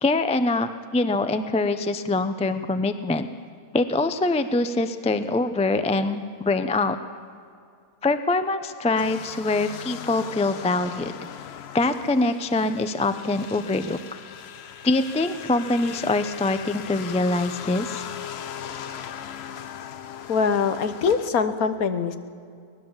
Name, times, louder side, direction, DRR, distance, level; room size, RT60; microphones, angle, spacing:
voice 1, 0.0-3.3 3.7-7.0 8.0-11.1 11.7-14.2 14.8-18.1, left 2 dB, 10° left, 10 dB, 0.3 m, -24 dB
sound 1, 9.0-21.3, left 8 dB, 55° left, 0.8 m, -38 dB
voice 2, 20.3-22.2, left 5 dB, 70° left, 10 dB, 1.5 m, -23 dB
23.5 x 19.0 x 7.3 m, 2.3 s
omnidirectional pair, 1.6 m